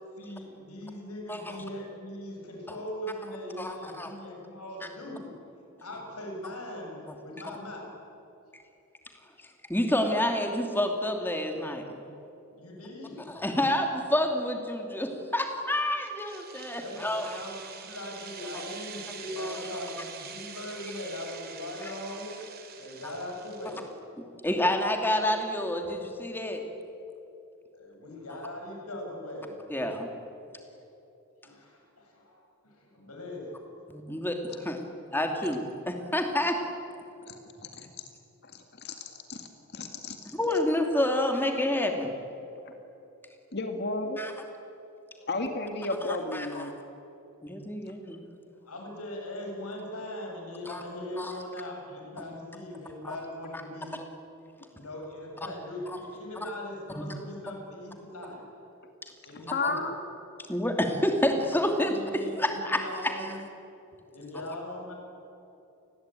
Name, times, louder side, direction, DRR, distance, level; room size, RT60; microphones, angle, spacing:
voice 1, 0.2-5.5 5.8-7.9 12.5-13.4 16.8-22.3 22.8-23.9 27.7-29.9 30.6-30.8 31.4-33.8 45.2-45.3 48.5-54.0 54.7-58.7 59.2-59.8 61.9-63.4 64.1-64.9, left 1 dB, 85° left, 0 dB, 7.3 m, -40 dB
voice 2, 3.6-4.1 9.7-12.1 13.3-17.4 19.4-19.5 24.4-26.6 29.7-30.1 33.9-34.8 35.1-36.6 40.3-42.1 44.2-44.3 46.0-46.7 47.4-48.2 50.7-50.8 51.2-51.3 53.0-53.2 55.9-56.0 56.4-56.5 56.9-57.0 59.6-59.7 60.5-63.3, left 1 dB, 10° left, 4 dB, 2.6 m, -28 dB
sound 1, 16.0-23.9, right 7 dB, 45° right, 3.0 m, -45 dB
voice 3, 38.4-39.5 39.7-40.3 43.5-44.2 45.3-46.7 59.5-60.0, left 2 dB, 45° left, 5 dB, 2.0 m, -33 dB
29.5 x 20.5 x 9.2 m, 2.9 s
head